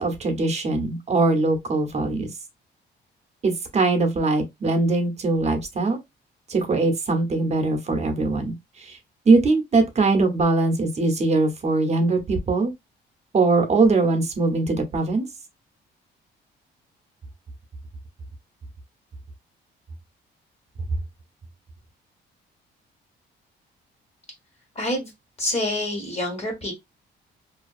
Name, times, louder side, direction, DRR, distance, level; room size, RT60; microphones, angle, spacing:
voice 1, 0.0-2.3 3.4-6.0 6.5-9.0 9.2-12.7 13.3-15.3, right 3 dB, 35° right, 0.8 m, -21 dB
voice 2, 24.7-25.1 25.4-26.7, left 1 dB, 30° left, 1.3 m, -27 dB
2.6 x 2.2 x 2.4 m
cardioid pair, 90°, 20 cm